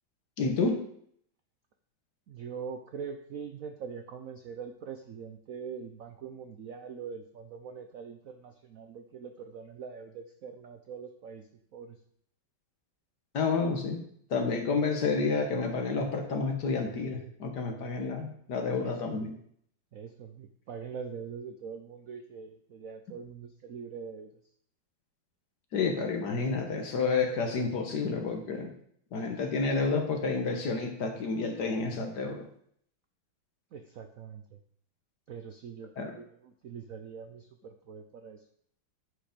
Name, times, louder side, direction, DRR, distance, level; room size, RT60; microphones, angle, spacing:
voice 1, 0.4-0.8 13.3-14.0 14.3-19.3 25.7-28.7 29.1-32.5 36.0-36.1, left 4 dB, 55° left, 4 dB, 1.7 m, -30 dB
voice 2, 2.3-11.5 11.7-12.0 18.7-19.0 19.9-24.3 33.7-34.6 35.3-38.4, right 6 dB, 70° right, 6 dB, 0.8 m, -43 dB
10.5 x 5.0 x 5.1 m, 0.66 s
omnidirectional pair, 2.3 m